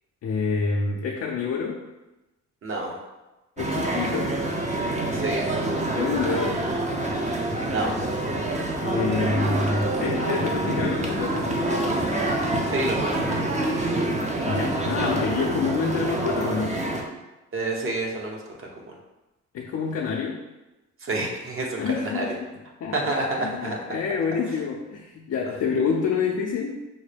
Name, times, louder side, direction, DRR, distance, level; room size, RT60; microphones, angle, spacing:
voice 1, 0.2-1.8 3.6-4.4 5.9-6.7 8.8-12.0 14.5-16.8 19.5-20.4 21.8-23.0 23.3-26.8, left 5 dB, 55° left, -1 dB, 0.5 m, -27 dB
voice 2, 2.6-3.0 5.1-5.4 7.7-8.0 12.7-13.6 17.5-18.4 18.8-19.0 21.0-22.3 22.9-23.8, right 2 dB, 45° right, 0 dB, 0.9 m, -28 dB
sound 1, 3.6-17.0, right 2 dB, 25° right, 0.6 m, -26 dB
5.4 x 2.1 x 3.3 m, 1.0 s
cardioid pair, 90°, 30 cm